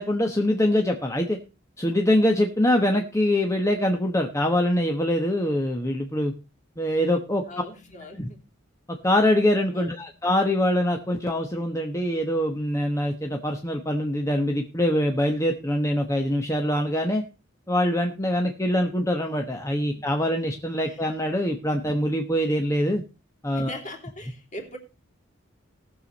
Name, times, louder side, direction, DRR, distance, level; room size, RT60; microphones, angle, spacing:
voice 1, 0.0-1.4 1.8-6.3 6.8-7.4 8.2-8.3 9.0-17.2 17.7-23.0 23.4-23.8, left 1 dB, 15° left, 1.1 m, -24 dB
voice 2, 7.4-8.5 9.7-10.0 19.9-20.1 20.8-21.0 23.5-24.8, left 1 dB, 40° left, 3.0 m, -41 dB
18.5 x 7.0 x 4.1 m
head